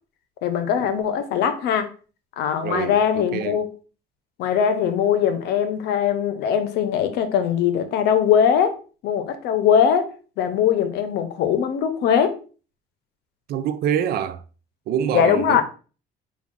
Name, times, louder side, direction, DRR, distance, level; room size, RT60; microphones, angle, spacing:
voice 1, 0.4-1.9 2.4-3.7 4.4-8.8 9.0-12.3 15.1-15.6, left 8 dB, 80° left, 0.7 m, -21 dB
voice 2, 2.6-3.6 13.5-14.4 14.9-15.6, right 9 dB, 65° right, 0.4 m, -26 dB
4.7 x 2.3 x 3.6 m
cardioid pair, 110°, 17 cm